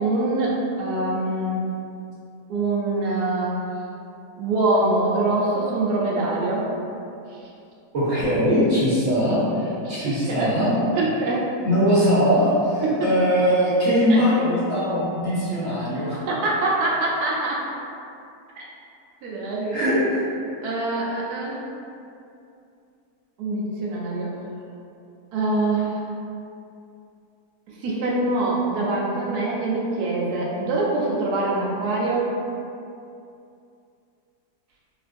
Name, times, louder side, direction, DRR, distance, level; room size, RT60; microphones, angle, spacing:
voice 1, 0.0-1.7 2.5-3.6 4.4-6.7 7.3-7.4 9.8-10.5 10.9-11.5 12.8-13.1 14.1-14.2 16.3-17.6 18.6-18.7 19.2-19.9 20.6-21.6 23.4-24.4 25.3-26.0 27.7-32.3, right 2 dB, 85° right, -4 dB, 1.1 m, -24 dB
voice 2, 7.9-10.7 11.6-16.2 19.7-20.2, equal, 60° right, -13 dB, 1.2 m, -21 dB
3.7 x 2.5 x 2.5 m, 2.6 s
omnidirectional pair, 1.6 m